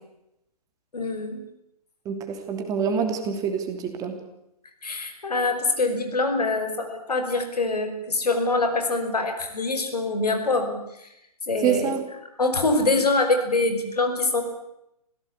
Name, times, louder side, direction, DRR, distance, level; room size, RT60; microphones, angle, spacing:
voice 1, 0.9-1.4 4.8-11.1 11.5-11.9 12.4-14.4, left 3 dB, 75° left, 6 dB, 5.3 m, -24 dB
voice 2, 2.0-4.2 11.6-12.0, right 7 dB, 15° right, 5 dB, 3.1 m, -26 dB
25.5 x 17.0 x 8.5 m, 0.83 s
figure-of-eight pair, 140°, 20 cm